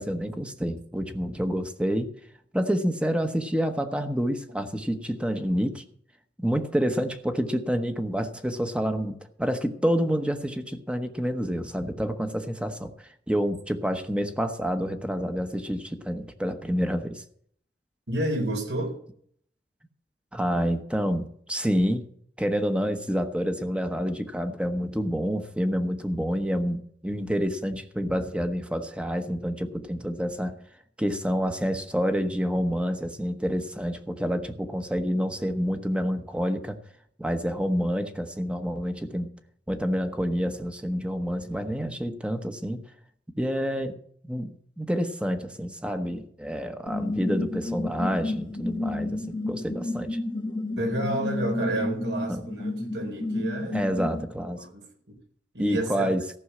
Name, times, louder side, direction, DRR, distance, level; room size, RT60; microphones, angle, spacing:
voice 1, 0.0-2.1 2.5-5.8 6.4-17.2 20.3-22.1 22.4-30.6 31.0-36.8 37.2-39.3 39.7-42.8 43.4-44.0 44.3-50.2 52.3-52.5 53.7-54.7 55.6-56.2, equal, 5° right, 7 dB, 1.0 m, -28 dB
voice 2, 18.1-18.9 50.8-53.8 54.6-55.2 55.5-56.1, right 1 dB, 80° right, 3 dB, 4.1 m, -30 dB
sound 1, 46.9-54.2, left 2 dB, 25° left, 1.1 m, -31 dB
14.5 x 6.2 x 8.5 m, 0.63 s
head